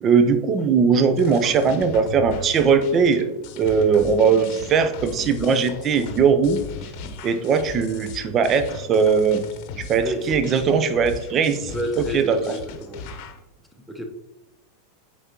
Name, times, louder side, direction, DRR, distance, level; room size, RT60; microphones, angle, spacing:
voice 1, 0.0-3.3 3.6-6.6 7.2-9.4 9.8-12.4, right 6 dB, 30° right, 10 dB, 0.6 m, -20 dB
sound 1, 1.2-13.4, left 5 dB, 45° left, 0.9 m, -37 dB
voice 2, 10.0-10.3 11.7-13.1 13.9-14.0, equal, ahead, 4 dB, 1.0 m, -30 dB
8.9 x 4.6 x 2.9 m, 0.93 s
figure-of-eight pair, 90°, 0 cm